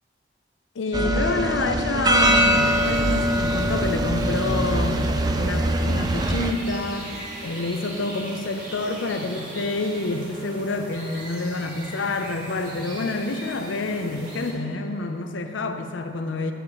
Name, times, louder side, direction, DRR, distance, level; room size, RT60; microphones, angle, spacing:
voice 1, 0.8-5.1 5.4-7.2 7.4-16.5, left 2 dB, 90° left, 7 dB, 0.6 m, -28 dB
sound 1, 0.9-6.5, right 1 dB, 20° right, 0.3 m, -22 dB
sound 2, 2.1-14.5, right 1 dB, 45° right, 1.8 m, -39 dB
10.0 x 8.7 x 3.1 m, 2.9 s
head